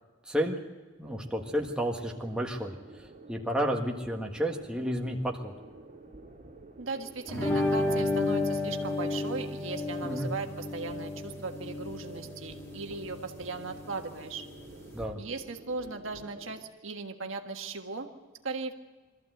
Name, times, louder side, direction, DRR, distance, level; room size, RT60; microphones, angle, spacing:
voice 1, 0.2-0.6 1.0-5.5 10.0-10.3 14.9-15.2, equal, 5° right, 0 dB, 1.6 m, -31 dB
sound 1, 1.0-16.6, right 2 dB, 40° right, 2.8 m, -50 dB
voice 2, 6.8-14.4 15.2-18.1 18.4-18.7, right 3 dB, 80° right, 4 dB, 1.6 m, -37 dB
sound 2, 7.3-15.0, left 2 dB, 15° left, 2.2 m, -32 dB
23.0 x 14.0 x 7.9 m, 1.3 s
head